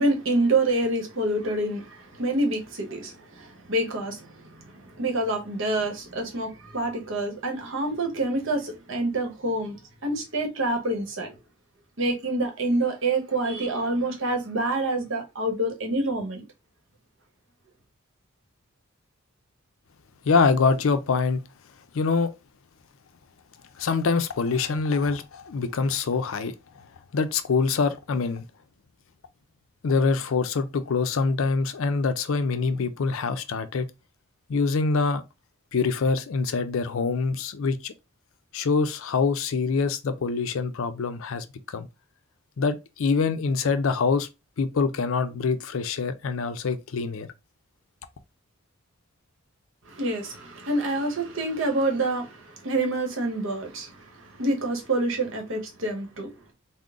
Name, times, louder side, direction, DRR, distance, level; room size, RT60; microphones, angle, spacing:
voice 1, 0.0-11.4 12.0-16.4 49.9-56.3, right 2 dB, 60° right, 1.0 m, -27 dB
voice 2, 20.2-21.4 21.9-22.3 23.8-26.8 27.1-28.4 29.8-33.9 34.5-35.2 35.7-37.9 38.5-41.9 42.6-44.3 44.6-47.3, left 4 dB, 65° left, 0.5 m, -25 dB
3.8 x 2.1 x 3.6 m
head